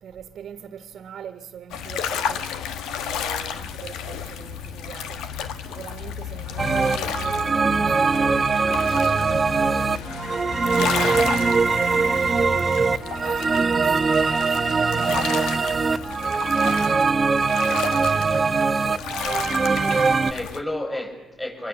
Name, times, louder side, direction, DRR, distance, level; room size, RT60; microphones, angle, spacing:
voice 1, 0.0-2.4 3.0-5.2 5.7-10.0 10.6-18.7, right 8 dB, 65° right, 1.7 m, -43 dB
sound 1, 1.7-20.6, left 7 dB, 90° left, 1.4 m, -32 dB
sound 2, 6.6-20.3, right 4 dB, 35° right, 1.1 m, -22 dB
voice 2, 19.6-21.7, left 1 dB, 15° left, 6.7 m, -33 dB
26.0 x 24.0 x 7.1 m
cardioid pair, 90°, 0 cm